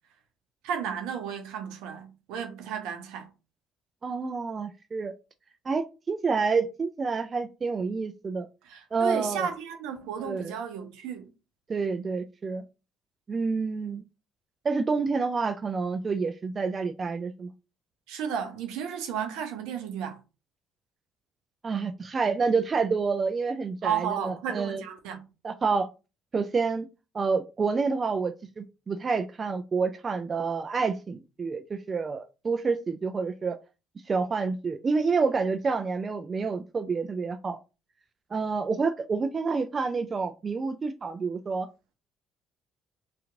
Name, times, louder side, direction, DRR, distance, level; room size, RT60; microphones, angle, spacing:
voice 1, 0.6-3.3 8.7-11.3 18.1-20.2 23.8-25.2, right 8 dB, 70° right, 0.7 m, -33 dB
voice 2, 4.0-5.1 5.7-8.5 8.9-9.5 10.2-10.5 11.7-12.7 13.3-14.0 14.6-17.5 21.6-24.8 25.4-25.9 26.3-26.9 27.1-33.6 34.1-37.6 38.3-41.7, right 4 dB, 35° right, 0.3 m, -28 dB
2.9 x 2.4 x 3.6 m
hypercardioid pair, 55°, 0 cm